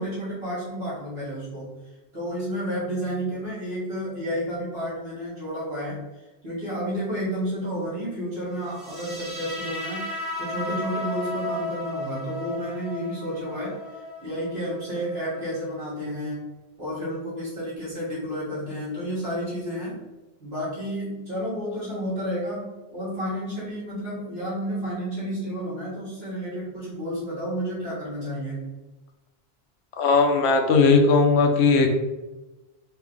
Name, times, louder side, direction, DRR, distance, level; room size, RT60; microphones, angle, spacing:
voice 1, 0.0-1.7 2.1-6.1 6.4-10.1 10.4-13.8 14.2-16.5 16.8-20.0 20.4-28.7, equal, 70° right, -9 dB, 2.0 m, -31 dB
sound 1, 8.7-15.7, left 2 dB, 30° right, 1.2 m, -34 dB
voice 2, 30.0-31.9, left 4 dB, 90° left, 4 dB, 0.9 m, -18 dB
4.3 x 2.4 x 3.8 m, 1.1 s
omnidirectional pair, 1.1 m